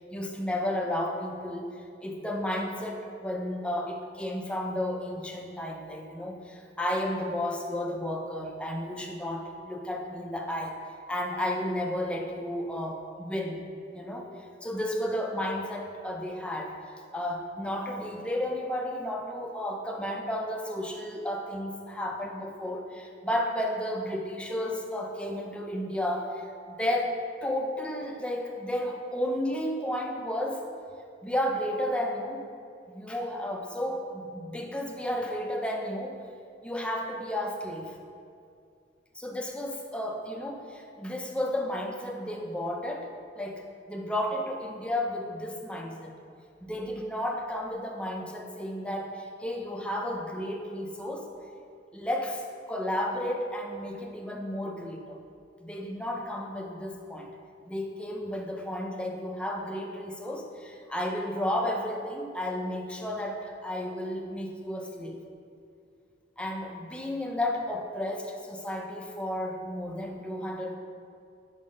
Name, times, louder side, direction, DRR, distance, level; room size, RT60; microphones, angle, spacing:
voice 1, 0.1-10.8 11.1-13.6 13.9-14.3 14.6-30.6 31.2-32.5 32.9-36.2 36.6-37.9 39.1-46.1 46.6-51.3 51.9-55.2 55.6-57.3 57.7-65.2 66.4-70.8, left 1 dB, 5° left, 1 dB, 0.5 m, -33 dB
5.5 x 5.3 x 5.1 m, 2.4 s
head